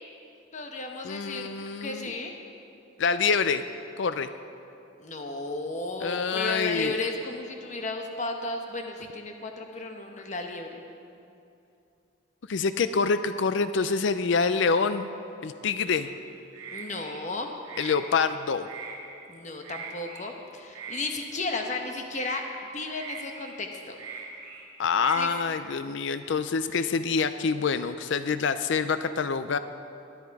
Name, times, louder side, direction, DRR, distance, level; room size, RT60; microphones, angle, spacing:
voice 1, 0.5-1.5 1.8-2.4 5.0-10.8 16.7-17.5 19.3-22.4 22.7-24.0 25.1-25.3, left 3 dB, 35° left, 3 dB, 1.0 m, -34 dB
voice 2, 1.0-2.1 3.0-3.6 4.0-4.3 6.0-7.0 12.5-15.1 15.4-16.1 17.8-18.7 24.8-29.6, left 5 dB, 65° left, 11 dB, 0.4 m, -26 dB
sound 1, 15.9-16.2 16.5-17.2 17.6-18.3 18.6-19.0 19.6-20.3 20.7-21.0 21.5-21.8 22.1-22.4 22.9-23.5 23.9-24.6 24.9-25.3, right 5 dB, 65° right, 2.9 m, -41 dB
21.0 x 10.0 x 4.7 m, 2.7 s
head